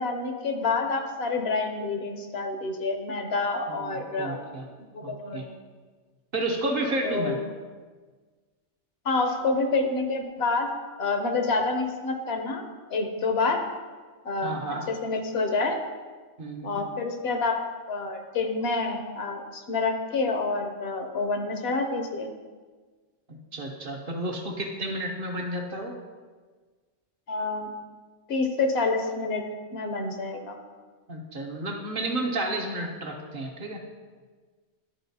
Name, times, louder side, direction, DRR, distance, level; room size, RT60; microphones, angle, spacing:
voice 1, 0.0-4.4 4.9-5.6 7.0-7.5 9.0-10.7 11.0-12.6 12.9-13.6 14.2-14.6 14.9-15.8 16.6-17.6 17.9-22.3 27.3-27.7 28.3-29.4 29.7-30.6, left 3 dB, 65° left, 4 dB, 0.9 m, -28 dB
voice 2, 3.7-4.7 5.0-5.4 6.3-7.4 14.4-14.8 16.4-16.8 23.5-26.0 31.1-33.8, right 1 dB, 55° right, 1 dB, 0.9 m, -31 dB
11.5 x 4.0 x 2.7 m, 1.4 s
omnidirectional pair, 1.2 m